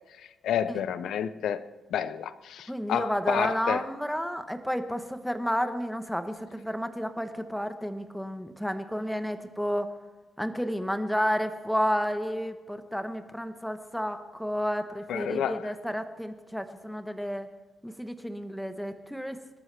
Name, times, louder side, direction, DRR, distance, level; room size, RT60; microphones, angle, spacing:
voice 1, 0.2-1.6 1.9-3.8 15.1-15.7, left 9 dB, 80° left, 13 dB, 0.7 m, -30 dB
voice 2, 2.7-9.9 10.4-17.5 17.8-19.4, equal, ahead, 8 dB, 1.1 m, -31 dB
27.5 x 12.5 x 3.4 m, 1.3 s
cardioid pair, 125°, 0 cm